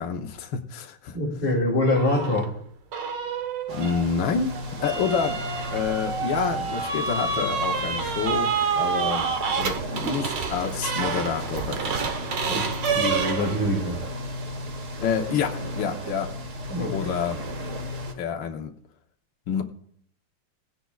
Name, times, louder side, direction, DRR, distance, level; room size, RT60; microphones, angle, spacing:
voice 1, 0.0-1.2 3.7-5.4 5.7-12.0 15.0-16.3 16.9-17.4 18.1-18.7 19.5-19.6, left 7 dB, 65° left, 2 dB, 1.6 m, -28 dB
voice 2, 1.1-2.6 12.5-14.0 16.7-17.1, left 1 dB, 25° left, -3 dB, 2.5 m, -25 dB
sound 1, 1.9-2.5 2.9-13.8, right 5 dB, 60° right, 1.6 m, -28 dB
sound 2, 3.7-18.1, equal, 40° right, 1.5 m, -35 dB
18.5 x 16.5 x 2.4 m, 0.67 s
omnidirectional pair, 2.4 m